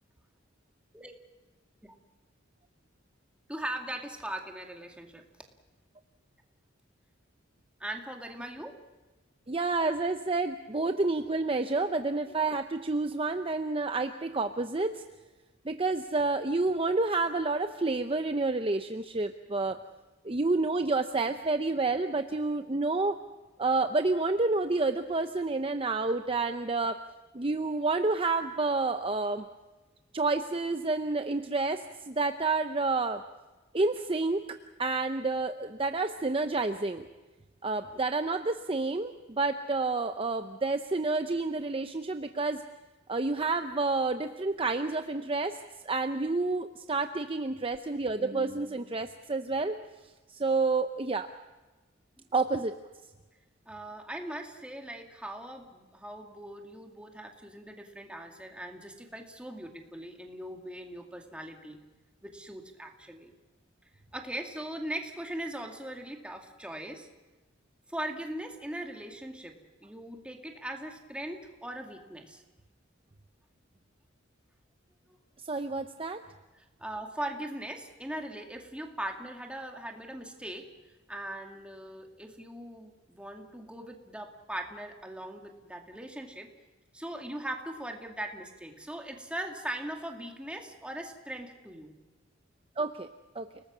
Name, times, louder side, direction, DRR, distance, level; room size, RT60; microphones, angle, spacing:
voice 1, 3.5-5.2 7.8-8.8 52.2-52.3 53.7-61.8 62.2-63.3 64.1-67.1 67.9-72.4 75.1-75.2 76.5-80.7 81.1-86.5 86.9-92.0, right 1 dB, 5° right, 3 dB, 2.3 m, -40 dB
voice 2, 9.5-15.0 15.6-19.8 20.2-23.2 23.6-27.0 27.3-29.5 30.1-33.2 33.7-34.4 34.8-37.1 37.6-42.6 43.1-45.6 45.8-49.7 50.3-51.3 52.3-52.7 75.4-76.2 92.8-93.1 93.3-93.5, right 3 dB, 30° right, 7 dB, 0.7 m, -29 dB
30.0 x 19.5 x 6.2 m, 1.2 s
head